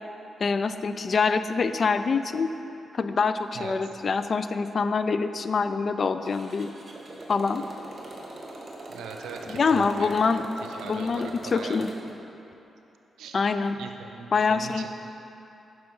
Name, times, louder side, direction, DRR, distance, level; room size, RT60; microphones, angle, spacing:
voice 1, 0.4-2.5 2.9-6.7 7.3-7.6 9.5-10.5 10.8-11.9 13.3-13.8 14.3-14.9, left 4 dB, 55° left, 10 dB, 0.4 m, -25 dB
voice 2, 3.5-3.9 8.9-10.3 10.6-11.8 13.2-13.4 13.7-14.9, right 6 dB, 80° right, 4 dB, 0.6 m, -41 dB
Motorcycle, 6.3-12.1, right 2 dB, 45° right, 1.6 m, -42 dB
9.3 x 6.1 x 4.7 m, 2.9 s
supercardioid pair, 45°, 0 cm